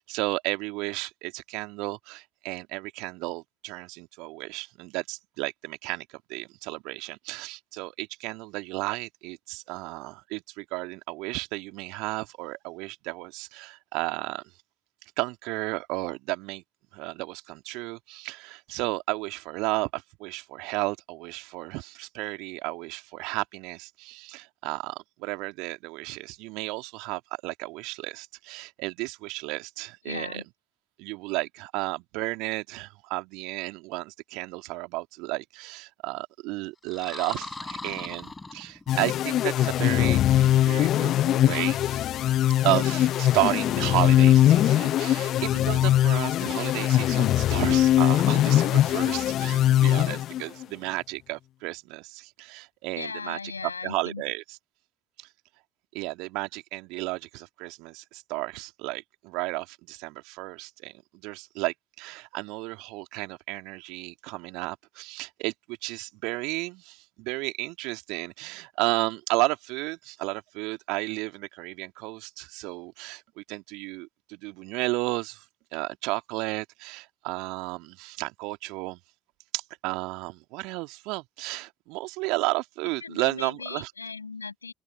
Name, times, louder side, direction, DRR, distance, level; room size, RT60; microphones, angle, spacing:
voice 1, 0.0-14.4 15.2-16.6 16.9-30.3 31.0-42.0 42.6-53.4 53.8-54.4 55.2-55.3 55.9-75.4 75.7-79.0 79.5-83.9, right 24 dB, 60° right, 2.2 m, -33 dB
voice 2, 30.0-30.4 52.9-54.2 83.0-84.7, left 4 dB, 85° left, 6.1 m, -37 dB
sound 1, 36.8-39.1, left 3 dB, 15° left, 3.4 m, -39 dB
sound 2, 38.9-50.6, left 12 dB, 50° left, 0.7 m, -21 dB
open air
figure-of-eight pair, 55°, 0 cm